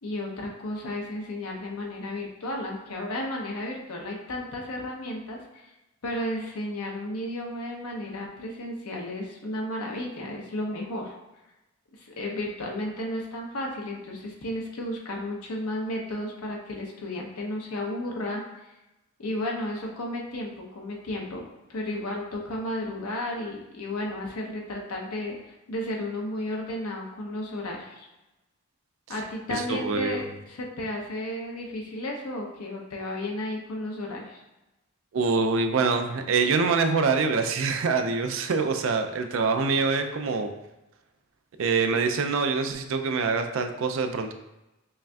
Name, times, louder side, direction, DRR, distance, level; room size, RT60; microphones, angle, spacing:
voice 1, 0.0-5.7 6.0-11.1 12.0-18.4 19.2-21.4 21.7-25.4 25.7-28.1 29.1-30.2 30.5-34.4, left 1 dB, 85° left, -1 dB, 0.8 m, -33 dB
voice 2, 29.5-30.2 35.1-40.5 41.6-44.3, right 4 dB, 65° right, 6 dB, 0.4 m, -25 dB
5.4 x 2.5 x 2.3 m, 0.98 s
head